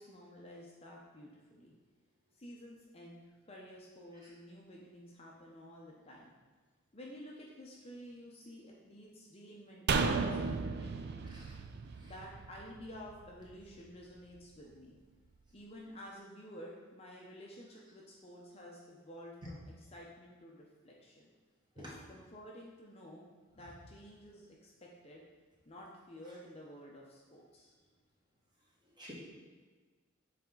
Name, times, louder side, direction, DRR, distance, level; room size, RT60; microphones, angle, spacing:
voice 1, 0.0-1.7 2.3-6.3 6.9-11.3 12.0-15.0 15.5-21.3 21.7-23.3 23.5-25.2 25.7-27.7, equal, 30° left, -2 dB, 0.7 m, -52 dB
sound 1, 9.9-13.2 13.5-13.6, right 4 dB, 50° right, 0.3 m, -34 dB
voice 2, 11.3-11.6 12.0-12.1 21.8-21.9 29.0-29.1, equal, 20° right, -5 dB, 1.4 m, -49 dB
7.0 x 4.2 x 3.8 m, 1.4 s
head